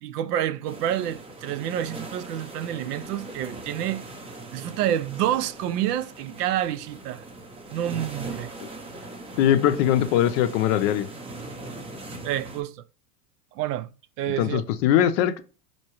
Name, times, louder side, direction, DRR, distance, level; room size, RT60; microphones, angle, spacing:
voice 1, 0.0-4.0 4.5-7.2 7.7-8.5 12.2-12.7 13.5-13.9 14.2-14.6, right 11 dB, 70° right, 0.5 m, -28 dB
sound 1, 0.6-12.6, right 2 dB, 10° right, 0.5 m, -40 dB
voice 2, 9.4-11.1 14.4-15.4, left 11 dB, 50° left, 0.5 m, -21 dB
4.4 x 2.8 x 2.9 m
supercardioid pair, 120°, 49 cm